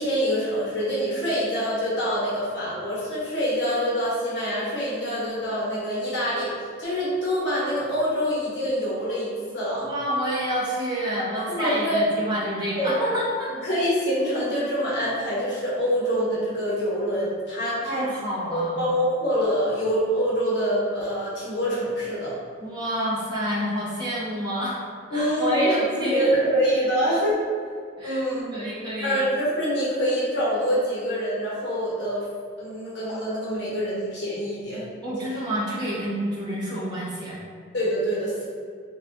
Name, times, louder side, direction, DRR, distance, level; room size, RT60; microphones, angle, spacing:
voice 1, 0.0-9.9 11.3-12.0 12.7-13.0 13.6-18.0 18.5-22.4 25.1-27.4 28.0-28.6 29.0-32.2 32.6-34.8 35.2-35.3 37.7-38.4, equal, 60° left, -8 dB, 1.3 m, -25 dB
voice 2, 9.8-13.6 17.8-18.8 22.6-24.8 25.1-26.3 28.0-28.2 28.5-29.2 35.0-37.4, equal, 20° right, -8 dB, 1.0 m, -28 dB
3.9 x 3.2 x 3.4 m, 2.1 s
head